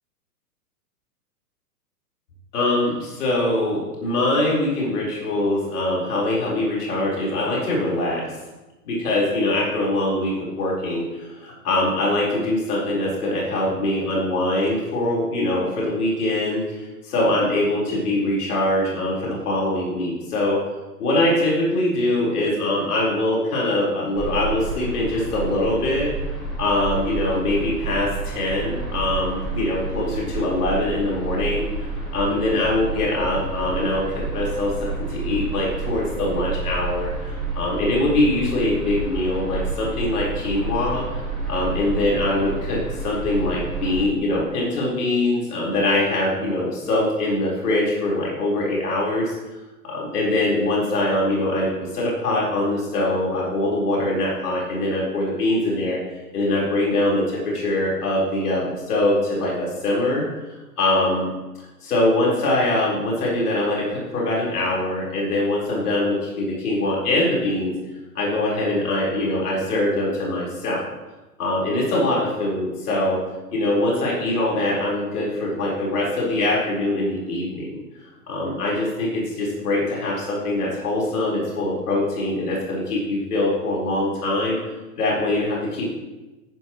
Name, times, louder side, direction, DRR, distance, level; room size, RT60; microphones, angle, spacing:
voice 1, 2.5-8.4 8.8-16.6 17.0-20.6 21.0-26.1 26.6-34.7 35.1-49.4 49.8-56.0 56.3-61.3 61.8-67.7 68.1-70.8 71.4-73.2 73.5-77.7 78.3-84.6 85.0-85.9, left 1 dB, 70° left, -4 dB, 4.5 m, -23 dB
sound 1, 24.1-44.0, right 3 dB, ahead, 4.5 m, -29 dB
14.5 x 10.0 x 3.1 m, 1.1 s
hypercardioid pair, 130°, 47 cm